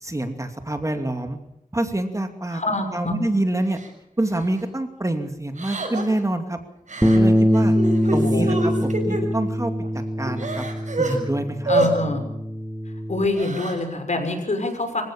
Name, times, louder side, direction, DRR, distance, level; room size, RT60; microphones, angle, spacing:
voice 1, 0.0-1.4 1.7-2.6 2.9-3.8 4.2-6.6 7.0-7.8 8.1-9.7 10.2-10.7 11.0-11.7, right 1 dB, 20° right, 6 dB, 2.6 m, -26 dB
voice 2, 2.5-3.2 8.2-8.5 11.7-12.2 12.9-15.0, left 2 dB, 60° left, 5 dB, 6.0 m, -26 dB
Crying sobbing, 3.8-3.9 4.4-4.6 5.6-6.2 6.9-7.2 7.5-9.2 9.8-9.9 10.2-11.2 11.7-11.9 13.2-13.8, right 2 dB, 60° right, 6.7 m, -26 dB
Bass guitar, 7.0-13.3, equal, 5° right, 1.9 m, -23 dB
26.5 x 16.0 x 7.3 m, 0.80 s
wide cardioid pair, 60°, 14 cm